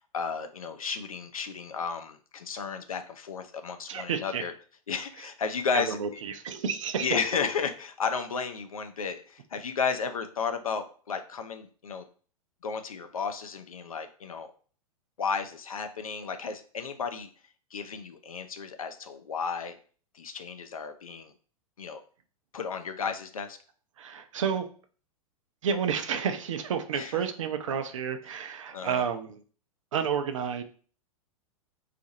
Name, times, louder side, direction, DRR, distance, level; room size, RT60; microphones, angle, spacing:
voice 1, 0.1-4.5 4.9-6.2 7.0-12.0 12.6-14.5 15.2-17.3 17.7-19.7 20.1-21.3 21.8-22.0 22.5-23.6 26.9-27.1 28.7-29.0, left 5 dB, 75° left, 8 dB, 0.5 m, -33 dB
voice 2, 3.9-4.4 5.7-7.2 24.0-24.7 25.6-29.4 29.9-30.6, right 7 dB, 60° right, 8 dB, 0.5 m, -30 dB
2.7 x 2.5 x 4.1 m, 0.42 s
figure-of-eight pair, 100°, 18 cm